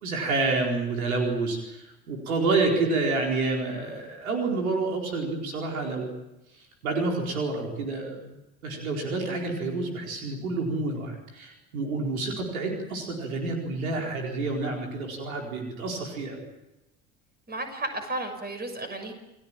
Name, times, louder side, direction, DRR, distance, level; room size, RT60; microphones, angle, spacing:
voice 1, 0.0-6.1 6.8-8.3 8.6-16.4, right 3 dB, 70° right, 1 dB, 4.6 m, -28 dB
voice 2, 17.5-19.1, right 2 dB, 20° right, 6 dB, 6.4 m, -33 dB
29.0 x 19.0 x 8.9 m, 0.95 s
figure-of-eight pair, 65°, 43 cm